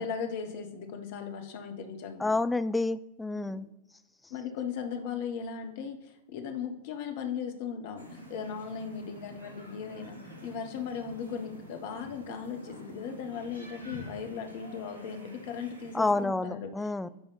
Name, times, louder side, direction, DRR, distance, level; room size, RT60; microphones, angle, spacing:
voice 1, 0.0-2.3 3.3-3.6 4.3-16.7, left 6 dB, 50° left, 5 dB, 1.1 m, -37 dB
voice 2, 2.2-3.7 15.9-17.1, left 2 dB, 10° left, 13 dB, 0.3 m, -29 dB
sound 1, 8.0-16.2, right 1 dB, 80° right, 2.3 m, -48 dB
10.0 x 3.4 x 4.1 m, 0.97 s
figure-of-eight pair, 90°, 0 cm